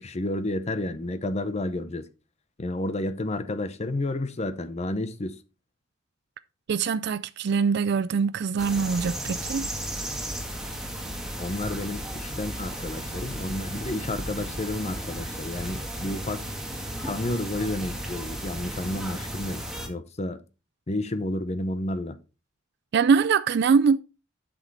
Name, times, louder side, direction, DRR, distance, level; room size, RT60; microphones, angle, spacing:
voice 1, 0.0-2.0 2.6-5.4 11.4-16.4 17.0-20.4 20.9-22.2, left 1 dB, 35° left, 0.7 m, -31 dB
voice 2, 6.7-9.7 22.9-24.0, right 5 dB, 55° right, 0.4 m, -23 dB
sound 1, 8.6-19.9, equal, 5° right, 1.6 m, -34 dB
7.9 x 6.2 x 3.9 m
head